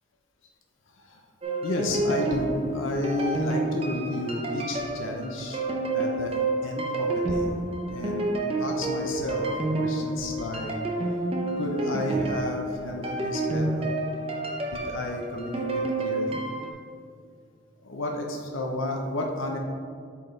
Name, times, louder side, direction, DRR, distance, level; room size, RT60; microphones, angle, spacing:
voice 1, 0.9-1.3 1.6-5.6 5.9-6.4 6.6-7.6 7.9-10.8 11.6-13.9 14.7-16.4 17.8-19.6, left 1 dB, 75° left, 1 dB, 0.7 m, -32 dB
sound 1, 1.4-16.7, right 2 dB, 30° right, 0.6 m, -29 dB
8.3 x 4.5 x 3.2 m, 2.3 s
head